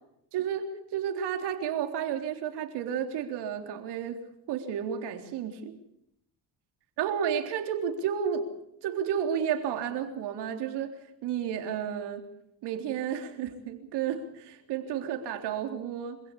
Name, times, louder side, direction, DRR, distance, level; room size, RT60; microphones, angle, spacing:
voice 1, 0.3-4.2 4.5-5.7 7.0-8.5 8.8-10.9 11.2-12.2 12.6-16.2, right 8 dB, 80° right, 5 dB, 3.7 m, -32 dB
26.0 x 16.5 x 8.4 m, 0.78 s
cardioid pair, 90°, 40 cm